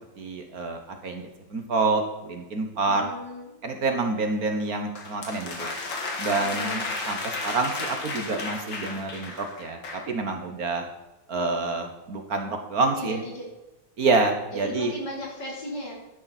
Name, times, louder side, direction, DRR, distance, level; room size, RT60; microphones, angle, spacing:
voice 1, 0.2-3.1 3.6-5.7 6.2-10.8 11.3-13.2 14.0-14.9, right 3 dB, 55° right, 4 dB, 1.7 m, -27 dB
voice 2, 2.9-3.5 6.3-7.1 12.8-13.5 14.5-15.9, equal, 65° left, -3 dB, 4.5 m, -36 dB
sound 1, 5.0-10.1, left 3 dB, 85° left, 2.6 m, -33 dB
12.0 x 10.5 x 4.2 m, 1.0 s
omnidirectional pair, 2.0 m